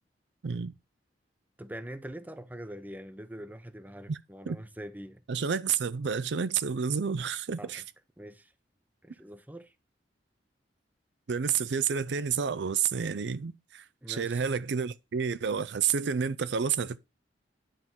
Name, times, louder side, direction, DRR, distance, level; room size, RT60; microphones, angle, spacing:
voice 1, 0.4-0.7 4.1-4.2 4.5-4.6 5.3-7.8 11.3-17.0, right 6 dB, 65° right, 0.5 m, -30 dB
voice 2, 1.6-5.2 7.6-7.8 8.2-8.5 9.0-9.7 14.0-14.5, right 1 dB, 10° right, 0.7 m, -43 dB
10.0 x 3.7 x 5.9 m
head